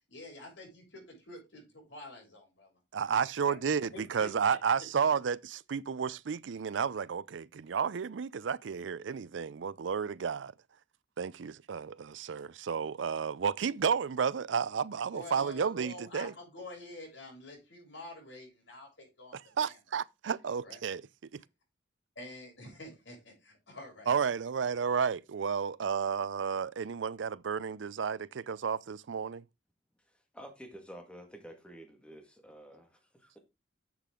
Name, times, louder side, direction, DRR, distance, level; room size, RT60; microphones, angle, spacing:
voice 1, 0.1-2.7 3.2-3.3 3.9-4.3 15.1-19.8 20.4-20.8 22.2-24.2, left 2 dB, 85° left, 7.1 m, -48 dB
voice 2, 2.9-10.5 11.2-16.3 19.3-21.0 21.3-21.4 24.1-29.4, right 6 dB, 80° right, 0.5 m, -32 dB
voice 3, 30.1-33.4, equal, 5° left, 1.9 m, -50 dB
10.5 x 7.5 x 3.7 m
head